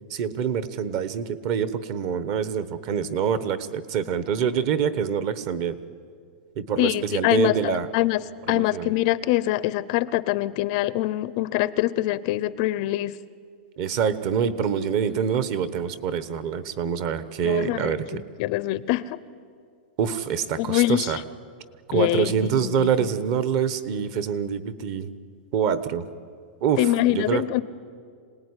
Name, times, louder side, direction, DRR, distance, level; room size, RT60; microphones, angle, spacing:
voice 1, 0.1-5.8 6.6-7.9 8.5-8.9 13.8-18.2 20.0-21.2 21.9-25.1 25.5-26.0 26.6-27.5, right 7 dB, 35° right, 14 dB, 1.1 m, -25 dB
voice 2, 6.8-8.2 8.5-13.2 17.4-19.2 20.6-21.2 21.9-23.1 26.8-27.6, left 16 dB, 35° left, 16 dB, 0.6 m, -24 dB
26.5 x 18.5 x 9.7 m, 2.1 s
supercardioid pair, 170°, 6 cm